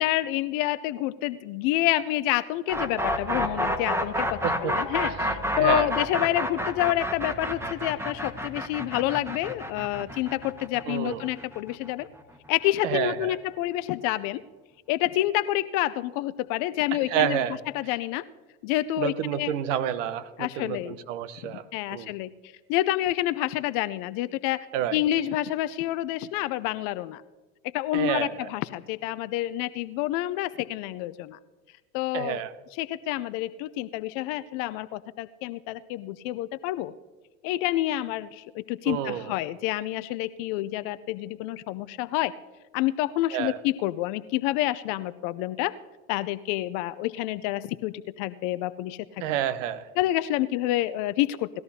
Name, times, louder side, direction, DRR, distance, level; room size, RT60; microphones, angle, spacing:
voice 1, 0.0-5.1 5.6-12.1 12.5-14.4 14.9-17.4 17.7-18.2 18.6-19.5 20.4-21.0 21.4-24.7 24.9-27.2 27.6-31.4 31.9-32.4 32.7-36.9 37.4-42.3 42.7-45.7 46.1-49.2 50.0-51.5, left 15 dB, 55° left, 14 dB, 0.6 m, -28 dB
sound 1, 2.7-12.5, equal, 5° right, 1.5 m, -29 dB
voice 2, 4.4-4.8 5.2-5.9 10.9-11.2 12.8-13.4 16.9-17.6 19.0-21.6 21.9-22.1 24.7-25.0 27.9-28.5 32.1-32.5 38.9-39.3 43.3-43.6 49.2-49.9, right 10 dB, 65° right, 15 dB, 1.0 m, -29 dB
19.5 x 13.5 x 2.8 m, 1.2 s
hypercardioid pair, 80°, 39 cm